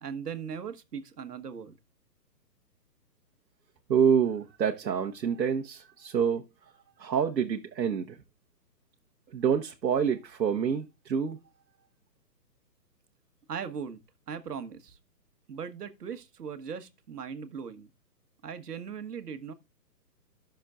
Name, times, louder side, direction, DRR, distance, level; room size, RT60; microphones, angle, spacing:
voice 1, 0.0-1.7 13.5-14.0 14.3-15.0 15.5-17.9 18.4-19.5, right 6 dB, 70° right, 1.4 m, -39 dB
voice 2, 3.9-6.4 7.0-8.2 9.3-11.4, right 7 dB, 85° right, 1.3 m, -27 dB
13.0 x 6.4 x 2.4 m
hypercardioid pair, 170°, 50 cm